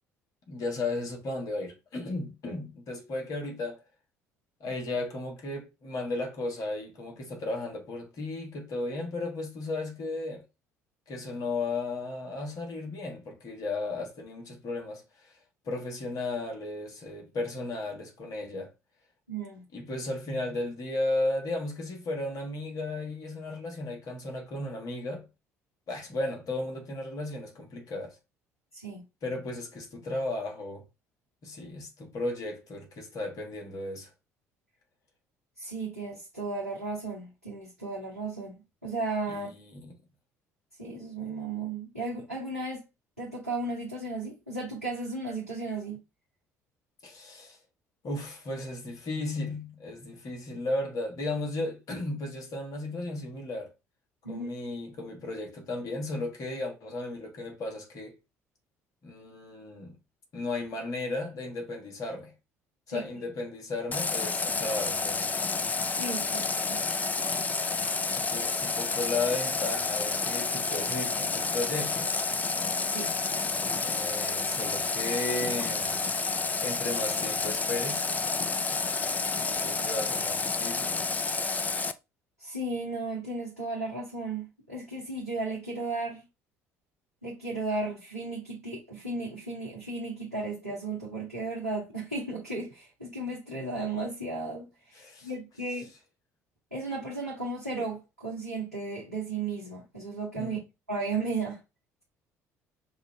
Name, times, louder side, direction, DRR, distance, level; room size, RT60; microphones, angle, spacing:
voice 1, 0.5-3.8 4.6-10.4 11.1-15.3 15.6-18.7 19.7-25.3 25.9-28.2 29.2-30.8 31.4-34.1 39.3-39.9 47.0-47.6 48.0-53.7 54.3-58.1 59.0-59.9 60.3-62.3 62.9-65.3 68.1-72.1 73.8-76.0 76.6-78.1 78.7-78.8 79.4-80.9 94.9-95.3 100.4-100.6, left 2 dB, 50° left, 1.5 m, -35 dB
voice 2, 19.3-19.6 28.7-29.0 35.6-38.5 38.8-39.5 40.8-42.8 43.2-46.0 54.2-54.5 62.9-63.0 65.9-66.8 72.8-73.1 82.4-86.2 87.2-95.9 96.7-100.6 100.9-101.6, right 3 dB, 90° right, 0.9 m, -35 dB
Water tap faucet, 63.9-81.9, left 4 dB, 20° left, 0.4 m, -30 dB
5.6 x 2.5 x 3.1 m
figure-of-eight pair, 55°, 8 cm